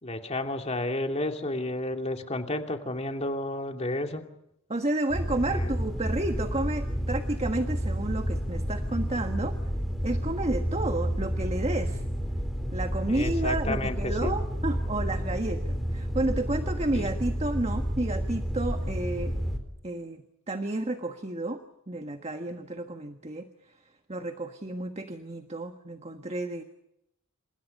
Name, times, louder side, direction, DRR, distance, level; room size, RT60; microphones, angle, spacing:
voice 1, 0.0-4.2 5.4-5.8 13.1-14.3 16.9-17.1, left 1 dB, 30° left, 4 dB, 2.6 m, -32 dB
voice 2, 4.7-9.6 10.0-12.0 12.7-19.3 19.8-23.5 24.1-26.6, right 2 dB, 30° right, 6 dB, 1.5 m, -31 dB
sound 1, 5.1-19.6, equal, ahead, 3.9 m, -30 dB
29.0 x 27.5 x 5.5 m, 0.79 s
head